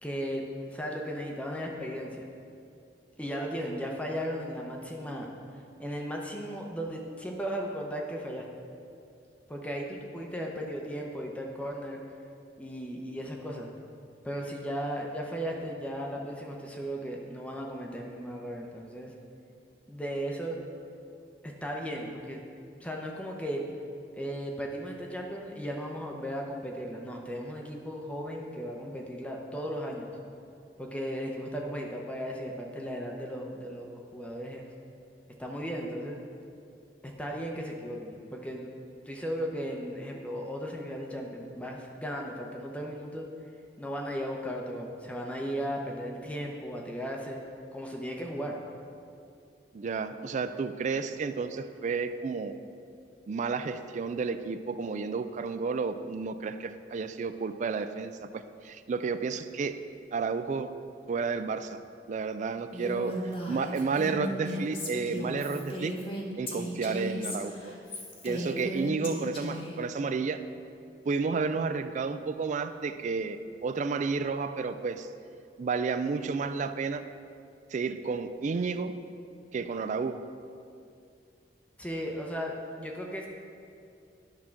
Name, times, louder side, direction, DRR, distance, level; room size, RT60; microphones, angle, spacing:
voice 1, 0.0-2.3 3.2-5.3 5.8-8.5 9.5-12.0 12.6-13.7 14.2-19.1 19.9-20.6 21.4-22.4 22.8-23.6 24.1-30.1 30.8-34.7 35.4-36.2 37.0-38.7 39.1-43.3 43.8-47.4 47.7-48.6 81.8-83.3, equal, 5° left, 0 dB, 0.7 m, -36 dB
voice 2, 49.7-52.6 53.3-59.8 60.1-60.7 61.1-61.8 62.1-65.9 66.4-67.7 68.2-70.4 71.1-75.1 75.6-77.0 77.7-78.9 79.5-80.2, right 4 dB, 45° right, 11 dB, 0.3 m, -31 dB
Female speech woman speaking, 62.7-69.8, equal, 30° left, 1.2 m, -36 dB
10.5 x 3.7 x 5.8 m, 2.5 s
head